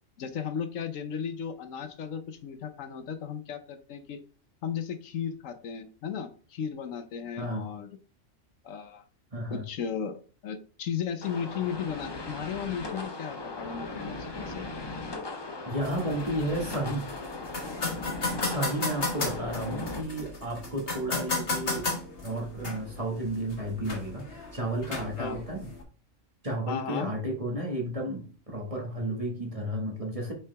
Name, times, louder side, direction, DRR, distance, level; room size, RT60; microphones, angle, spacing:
voice 1, 0.2-4.2 4.6-7.9 8.6-9.0 9.5-14.7 25.2-25.4 26.7-27.1, left 7 dB, 75° left, 9 dB, 1.1 m, -35 dB
voice 2, 7.4-7.7 9.3-9.6 15.6-17.1 18.4-21.9 22.2-25.7 26.4-30.3, right 1 dB, 25° right, 0 dB, 1.6 m, -32 dB
sound 1, 11.2-20.0, left 2 dB, 25° left, 0.7 m, -38 dB
sound 2, 15.8-25.8, left 3 dB, 45° left, 1.7 m, -35 dB
5.7 x 4.8 x 3.4 m, 0.38 s
omnidirectional pair, 1.4 m